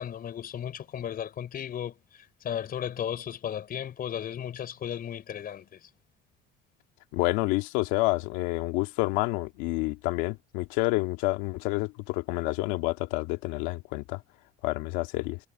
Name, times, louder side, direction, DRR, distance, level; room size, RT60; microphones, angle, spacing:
voice 1, 0.0-5.9, left 9 dB, 50° left, 5.4 m, -35 dB
voice 2, 7.1-14.2 14.6-15.4, left 22 dB, 85° left, 2.3 m, -28 dB
supercardioid pair, 85°, 19 cm